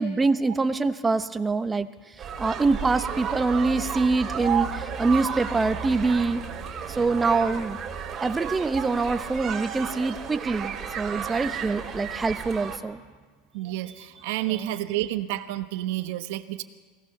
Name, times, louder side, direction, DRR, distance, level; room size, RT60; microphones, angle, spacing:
voice 1, 0.0-6.4 6.9-7.8 8.2-13.0 14.5-14.7, right 3 dB, 15° right, 10 dB, 1.0 m, -25 dB
sound 1, 2.2-12.8, right 7 dB, 30° right, 3.0 m, -33 dB
voice 2, 13.5-16.6, right 14 dB, 75° right, 8 dB, 1.1 m, -30 dB
22.5 x 17.5 x 6.8 m, 1.5 s
supercardioid pair, 130°, 0 cm